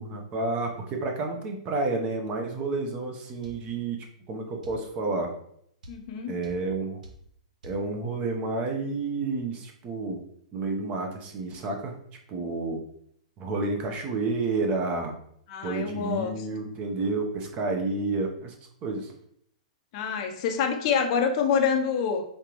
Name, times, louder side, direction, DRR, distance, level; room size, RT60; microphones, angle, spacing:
voice 1, 0.0-4.0 4.3-5.3 6.3-7.0 7.6-10.2 10.5-11.9 12.3-12.8 13.4-15.1 15.6-18.5 18.8-19.1, right 3 dB, 30° right, 3 dB, 0.7 m, -30 dB
sound 1, 3.4-3.6 4.6-4.8 5.8-6.0 6.4-6.6 7.0-7.2 7.6-7.8, right 1 dB, 90° right, 0.9 m, -45 dB
voice 2, 5.9-6.3 15.5-16.3 19.9-22.2, left 6 dB, 45° left, 5 dB, 0.5 m, -26 dB
3.8 x 3.3 x 2.9 m, 0.68 s
hypercardioid pair, 140°, 4 cm